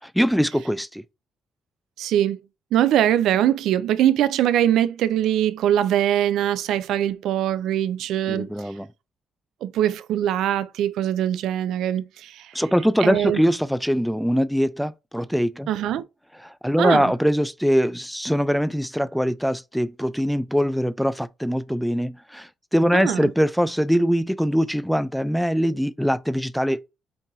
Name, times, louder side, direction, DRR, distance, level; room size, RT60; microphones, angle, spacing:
voice 1, 0.0-1.0 8.3-8.9 12.5-15.7 16.4-26.8, equal, ahead, 0.4 m, -22 dB
voice 2, 2.0-2.4 2.7-8.5 9.6-12.5 13.0-13.4 15.7-16.0 16.8-17.1 22.9-23.3, right 11 dB, 85° right, 0.4 m, -22 dB
5.5 x 2.7 x 2.6 m
cardioid pair, 90°, 0 cm